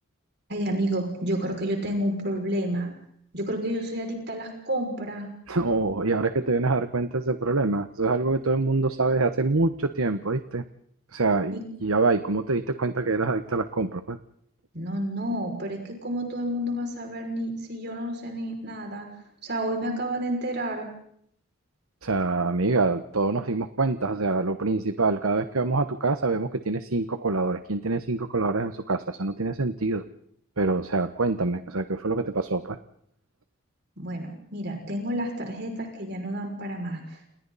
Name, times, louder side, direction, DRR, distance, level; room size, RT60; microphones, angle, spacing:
voice 1, 0.5-2.9 3.3-5.3 11.5-11.6 14.7-19.1 19.4-20.9 34.0-37.3, right 1 dB, 50° right, 2 dB, 6.1 m, -30 dB
voice 2, 5.5-10.6 11.1-14.2 22.0-30.0 30.6-32.8, right 3 dB, 90° right, 10 dB, 1.2 m, -25 dB
30.0 x 29.5 x 4.2 m, 0.67 s
head